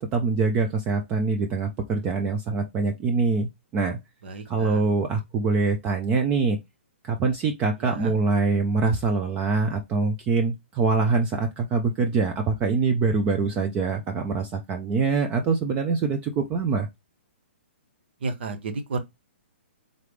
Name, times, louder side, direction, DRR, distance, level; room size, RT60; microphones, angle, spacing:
voice 1, 0.0-4.0 4.5-6.6 7.0-16.9, right 4 dB, 15° right, 0.4 m, -24 dB
voice 2, 4.2-4.8 7.8-8.1 18.2-19.0, right 3 dB, 55° right, 1.1 m, -32 dB
3.8 x 3.3 x 3.2 m
hypercardioid pair, 165°, 7 cm